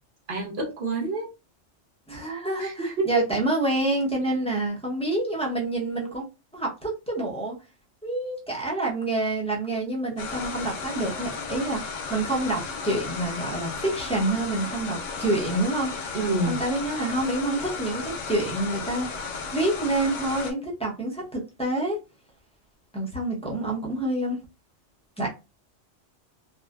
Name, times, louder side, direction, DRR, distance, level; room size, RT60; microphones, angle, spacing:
voice 1, 0.3-1.3 2.6-3.3 16.1-16.6, right 2 dB, 50° right, 0.9 m, -27 dB
voice 2, 2.1-6.2 6.5-7.5 8.0-15.9 16.5-19.1 19.5-22.0 22.9-24.4 25.2-25.3, right 2 dB, 5° left, 0.5 m, -27 dB
sound 1, 10.2-20.5, left 4 dB, 85° left, 0.9 m, -34 dB
2.5 x 2.2 x 2.2 m
omnidirectional pair, 1.2 m